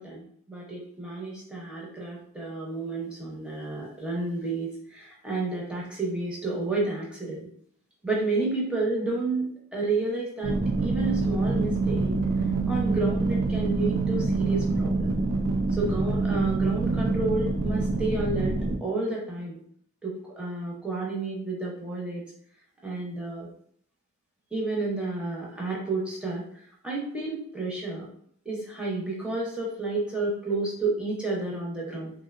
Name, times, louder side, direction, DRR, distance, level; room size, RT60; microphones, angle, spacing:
voice 1, 0.0-7.5 8.0-12.1 12.7-15.1 15.8-19.6 20.0-22.2 22.8-23.5 24.5-26.4 26.8-28.1 28.5-32.1, right 3 dB, 5° right, -4 dB, 0.5 m, -31 dB
sound 1, 10.4-18.8, right 3 dB, 75° right, 0.4 m, -26 dB
2.7 x 2.0 x 2.3 m, 0.63 s
head